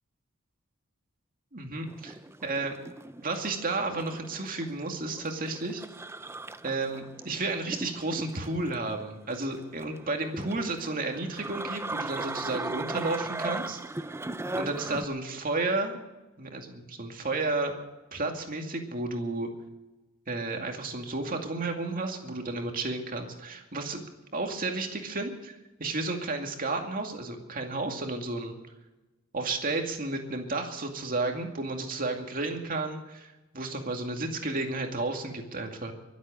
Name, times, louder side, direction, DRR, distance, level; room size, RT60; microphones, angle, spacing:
voice 1, 1.5-2.7 3.2-5.8 6.6-14.1 14.6-16.0 16.4-17.7 18.1-19.5 20.3-24.1 24.3-28.6 29.3-35.9, right 3 dB, 45° right, 3 dB, 2.3 m, -32 dB
sound 1, 1.9-15.1, right 2 dB, 10° right, 0.5 m, -38 dB
23.5 x 8.3 x 6.5 m, 1.1 s
head